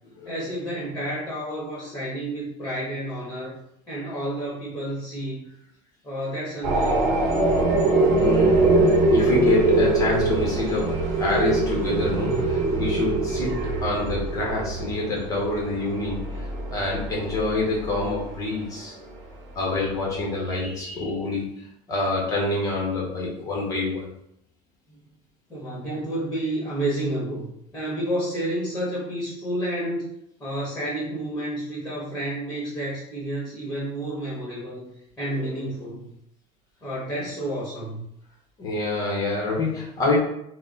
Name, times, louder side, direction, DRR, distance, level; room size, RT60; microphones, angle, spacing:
voice 1, 0.2-3.5 3.9-5.5 6.0-7.3 25.5-27.5 27.7-30.1 30.4-36.1 36.8-38.0, right 1 dB, 5° left, -7 dB, 1.3 m, -30 dB
sound 1, 6.6-18.3, right 2 dB, 55° right, 0.9 m, -22 dB
voice 2, 8.1-18.9 19.6-24.1 35.3-35.5 38.6-40.2, left 2 dB, 25° left, -3 dB, 0.9 m, -27 dB
4.4 x 2.1 x 3.8 m, 0.75 s
cardioid pair, 170°, 14 cm